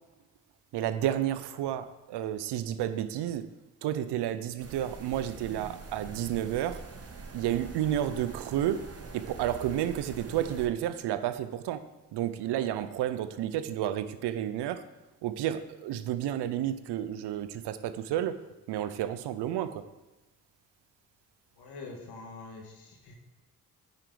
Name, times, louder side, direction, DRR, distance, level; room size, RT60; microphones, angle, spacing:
voice 1, 0.7-3.5 3.8-6.8 7.3-8.9 9.1-11.8 12.1-14.8 15.2-18.4 18.7-19.8, right 11 dB, 80° right, 12 dB, 0.6 m, -31 dB
sound 1, 4.6-10.7, right 4 dB, 35° right, 1.1 m, -44 dB
voice 2, 21.6-23.1, left 3 dB, 80° left, 2 dB, 1.6 m, -45 dB
9.7 x 4.7 x 3.9 m, 1.1 s
supercardioid pair, 60°, 40 cm